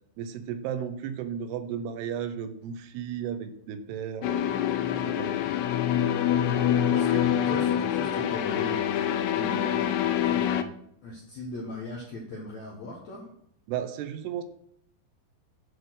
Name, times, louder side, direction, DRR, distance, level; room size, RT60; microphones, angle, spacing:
voice 1, 0.2-4.6 4.9-5.4 13.7-14.4, right 8 dB, 80° right, 10 dB, 2.6 m, -34 dB
sound 1, 4.2-10.6, left 10 dB, 90° left, 2.8 m, -26 dB
Brass instrument, 5.9-10.1, right 2 dB, 45° right, 1.6 m, -42 dB
voice 2, 6.4-8.8 9.3-9.9 10.2-10.5 11.0-13.3, left 2 dB, 70° left, -3 dB, 1.7 m, -38 dB
7.9 x 4.2 x 6.2 m, 0.70 s
omnidirectional pair, 4.8 m